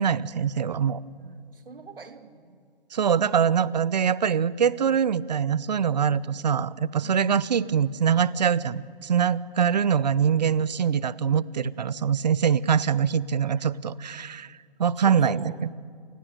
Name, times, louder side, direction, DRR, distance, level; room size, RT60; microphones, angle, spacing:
voice 1, 0.0-1.0 2.9-14.5 14.8-15.7, right 7 dB, 45° right, 20 dB, 0.9 m, -23 dB
voice 2, 1.2-2.6 7.0-7.3 15.0-15.6, right 4 dB, 65° right, 9 dB, 2.7 m, -45 dB
29.5 x 25.0 x 8.0 m, 2.3 s
figure-of-eight pair, 150°, 29 cm